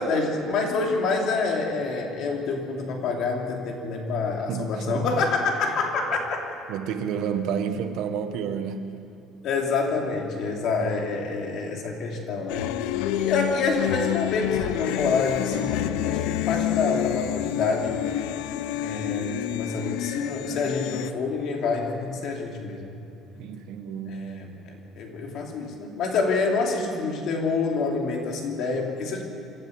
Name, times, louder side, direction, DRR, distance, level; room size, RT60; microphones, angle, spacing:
voice 1, 0.0-6.4 9.4-12.7 13.0-18.0 18.8-22.9 24.1-24.5 25.0-29.2, left 4 dB, 50° left, 1 dB, 3.0 m, -27 dB
voice 2, 4.5-5.1 6.7-8.9 23.4-24.3, right 7 dB, 60° right, 8 dB, 1.3 m, -30 dB
sound 1, 12.5-21.1, left 13 dB, 85° left, 0.6 m, -28 dB
26.5 x 12.0 x 8.0 m, 2.7 s
cardioid pair, 170°, 0 cm